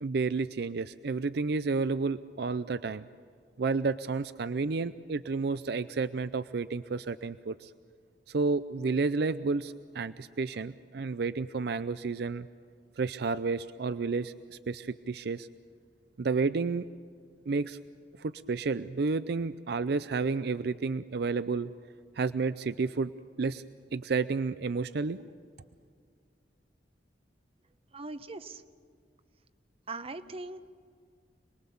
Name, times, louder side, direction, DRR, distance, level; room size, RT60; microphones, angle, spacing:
voice 1, 0.0-3.0 3.6-7.7 8.3-12.5 13.0-15.5 16.2-16.9 17.5-17.8 18.2-21.7 22.2-23.1 23.4-23.6 23.9-25.2, right 4 dB, 65° right, 14 dB, 0.5 m, -31 dB
voice 2, 27.9-28.6 29.9-30.7, right 3 dB, 35° right, 11 dB, 0.9 m, -40 dB
27.0 x 20.5 x 7.0 m, 2.1 s
head